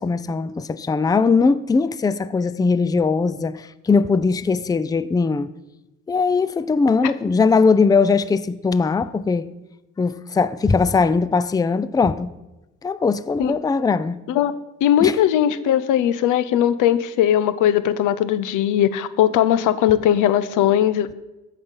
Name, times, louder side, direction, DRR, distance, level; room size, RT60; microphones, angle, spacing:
voice 1, 0.0-5.5 6.1-9.5 10.0-12.3 12.8-14.2 15.0-15.2, left 4 dB, 15° left, 0.4 m, -20 dB
voice 2, 14.8-21.1, left 10 dB, 85° left, 0.6 m, -19 dB
14.5 x 5.8 x 5.4 m
cardioid pair, 90°, 30 cm